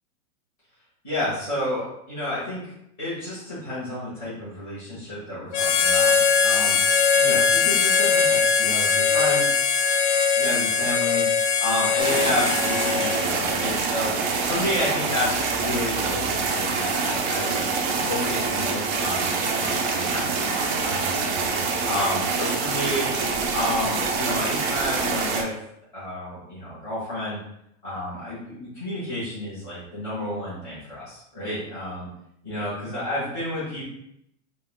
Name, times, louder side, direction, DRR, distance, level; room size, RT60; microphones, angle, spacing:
voice 1, 1.0-2.7 3.0-6.2 6.4-6.8 7.2-9.6 10.4-11.2 11.6-14.1 14.5-17.7 18.0-21.4 21.8-23.1 23.5-25.5 25.9-27.4 27.8-32.1 32.4-33.8, left 1 dB, 5° left, -19 dB, 0.3 m, -30 dB
Harmonica, 5.5-13.6, left 6 dB, 70° left, 0.5 m, -21 dB
sound 1, 12.0-25.4, right 4 dB, 60° right, 0.6 m, -25 dB
2.5 x 2.3 x 3.5 m, 0.77 s
supercardioid pair, 180°, 38 cm